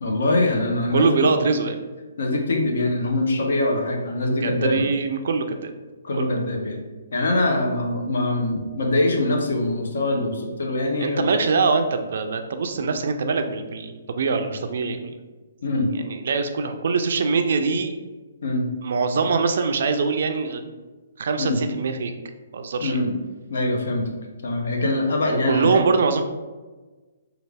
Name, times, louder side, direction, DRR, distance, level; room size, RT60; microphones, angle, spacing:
voice 1, 0.0-1.3 2.2-4.9 6.0-6.8 7.1-11.3 15.6-15.9 18.4-18.6 21.4-21.6 22.8-23.2 23.5-24.1 24.4-25.8, left 2 dB, 65° left, 2 dB, 0.7 m, -23 dB
voice 2, 0.9-1.7 4.4-5.7 6.1-6.3 11.0-15.2 16.0-17.9 18.8-20.7 21.2-22.1 22.5-23.0 25.3-26.2, right 4 dB, 55° right, 7 dB, 0.3 m, -23 dB
3.2 x 2.3 x 3.3 m, 1.3 s
hypercardioid pair, 175°, 0 cm